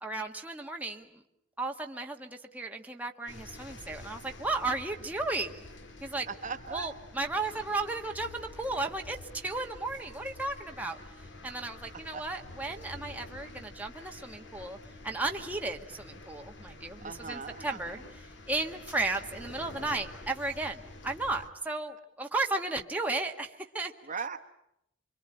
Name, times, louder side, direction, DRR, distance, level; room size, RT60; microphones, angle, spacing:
voice 1, 0.0-1.2 1.6-5.6 6.0-6.3 6.7-14.8 15.0-23.9, right 2 dB, 10° right, 2 dB, 1.4 m, -34 dB
sound 1, 3.3-21.5, left 2 dB, 60° left, 2.1 m, -48 dB
voice 2, 6.2-6.9 12.1-12.2 17.0-18.0 24.0-24.4, right 5 dB, 40° right, 7 dB, 1.3 m, -38 dB
25.5 x 24.5 x 8.8 m, 0.79 s
head